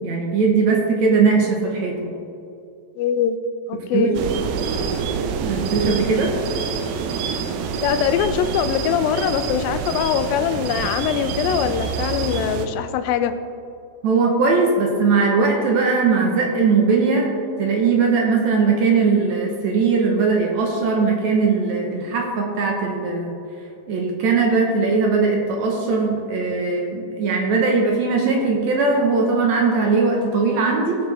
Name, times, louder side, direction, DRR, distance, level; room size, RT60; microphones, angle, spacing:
voice 1, 0.0-2.1 3.9-4.1 5.4-6.3 14.0-17.3 17.6-23.4 23.9-31.0, right 4 dB, 65° right, 0 dB, 2.2 m, -19 dB
voice 2, 3.0-3.4 3.7-4.1 7.8-13.3, left 8 dB, 90° left, 10 dB, 2.4 m, -22 dB
sound 1, 4.1-12.7, right 6 dB, 85° right, 2.6 m, -26 dB
19.0 x 7.1 x 3.5 m, 2.5 s
omnidirectional pair, 4.1 m